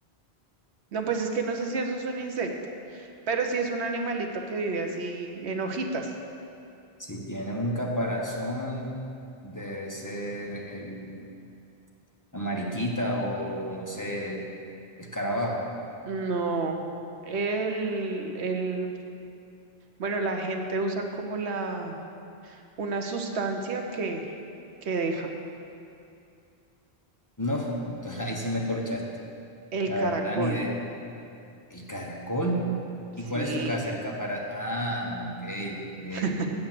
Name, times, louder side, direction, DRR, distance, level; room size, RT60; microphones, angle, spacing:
voice 1, 0.9-2.5 2.9-6.1 16.0-16.8 17.2-18.9 20.0-22.0 22.4-24.3 24.8-25.3 29.7-30.6 33.3-33.7 36.1-36.5, right 3 dB, 85° right, 4 dB, 1.1 m, -30 dB
voice 2, 7.0-9.0 9.4-11.2 12.3-14.5 15.0-15.7 27.4-29.0 29.9-30.8 31.7-32.6 33.2-36.5, equal, 20° left, -2 dB, 1.0 m, -31 dB
7.8 x 7.4 x 7.5 m, 2.6 s
omnidirectional pair, 1.1 m